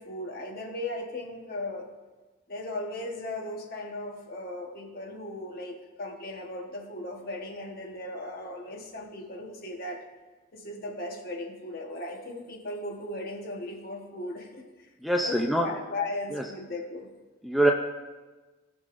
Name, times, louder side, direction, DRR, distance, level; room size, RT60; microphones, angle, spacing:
voice 1, 0.0-1.9 2.5-10.0 10.5-14.9 15.2-17.1, left 2 dB, 45° left, 2 dB, 1.2 m, -37 dB
voice 2, 15.0-15.7 16.3-16.4 17.4-17.7, right 1 dB, ahead, 0 dB, 0.4 m, -24 dB
18.5 x 6.4 x 2.6 m, 1.2 s
head